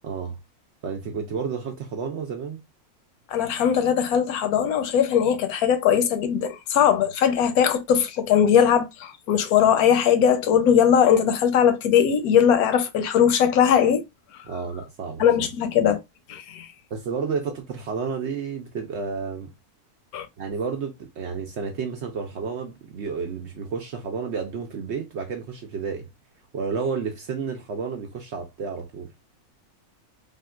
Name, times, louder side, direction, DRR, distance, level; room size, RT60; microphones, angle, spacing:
voice 1, 0.0-0.4 0.8-2.6 14.4-15.2 16.9-19.5 20.4-26.1 26.5-29.1, right 5 dB, 65° right, 0.7 m, -31 dB
voice 2, 3.3-14.0 15.2-16.0 16.3-16.7 20.1-20.3, left 8 dB, 80° left, 1.1 m, -20 dB
3.5 x 2.3 x 2.2 m
omnidirectional pair, 1.6 m